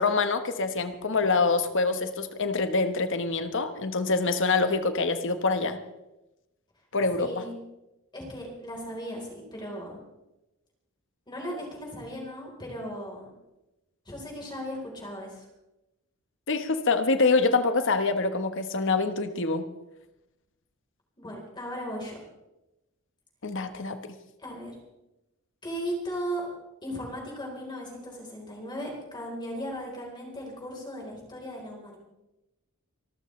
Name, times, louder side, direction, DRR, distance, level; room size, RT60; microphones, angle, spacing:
voice 1, 0.0-5.8 6.9-7.4 16.5-19.7 23.4-24.0, left 3 dB, 60° left, 9 dB, 1.3 m, -25 dB
voice 2, 7.2-7.6 8.1-9.9 11.3-13.3 14.1-15.5 21.2-22.2 24.4-24.8 25.6-26.5 26.8-32.0, equal, 20° left, -1 dB, 4.0 m, -37 dB
26.5 x 13.0 x 3.3 m, 0.95 s
head